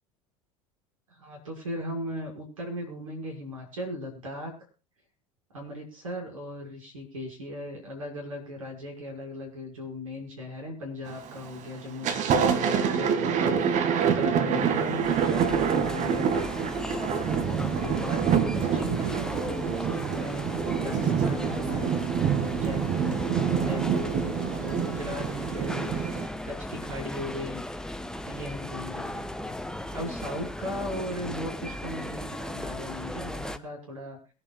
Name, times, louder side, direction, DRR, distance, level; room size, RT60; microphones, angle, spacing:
voice 1, 1.1-4.5 5.5-16.5 17.4-20.5 20.8-22.0 22.5-25.9 26.4-27.6 28.3-29.6 29.9-34.2, left 1 dB, 80° right, 1 dB, 5.9 m, -38 dB
Thunder, 11.1-11.5 11.8-26.3, right 7 dB, 45° right, 2.1 m, -26 dB
sound 1, 15.0-33.6, left 1 dB, 5° left, 1.1 m, -36 dB
23.5 x 11.0 x 2.4 m, 0.34 s
figure-of-eight pair, 70°, 17 cm